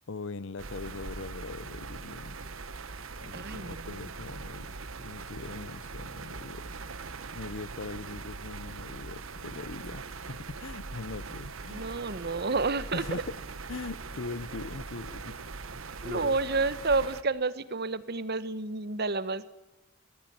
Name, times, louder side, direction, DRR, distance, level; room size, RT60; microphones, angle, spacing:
voice 1, 0.1-2.5 3.2-4.7 5.0-6.7 7.3-11.9 12.9-13.4 13.7-15.4 16.0-16.4, left 3 dB, 65° left, 18 dB, 0.8 m, -41 dB
sound 1, 0.6-17.2, right 4 dB, 85° right, 1.2 m, -41 dB
voice 2, 3.3-3.9 11.7-13.0 16.0-19.5, right 3 dB, 50° right, 14 dB, 1.1 m, -30 dB
22.0 x 15.0 x 9.4 m, 0.98 s
head